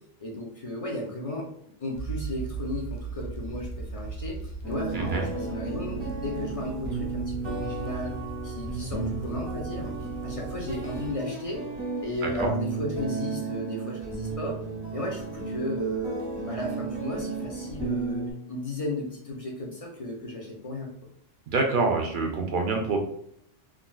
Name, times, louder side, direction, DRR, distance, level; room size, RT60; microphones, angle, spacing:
voice 1, 0.2-1.5 1.8-4.4 4.6-8.1 8.4-9.9 10.2-11.6 12.0-14.6 14.9-16.2 16.5-20.9, left 1 dB, 40° left, -2 dB, 0.5 m, -34 dB
sound 1, 1.9-11.1, right 4 dB, 90° left, 1.0 m, -38 dB
sound 2, 4.6-18.3, right 4 dB, 25° right, 0.7 m, -34 dB
voice 2, 21.5-23.0, right 3 dB, 60° right, 2 dB, 0.5 m, -26 dB
3.6 x 2.3 x 2.3 m, 0.72 s
omnidirectional pair, 1.3 m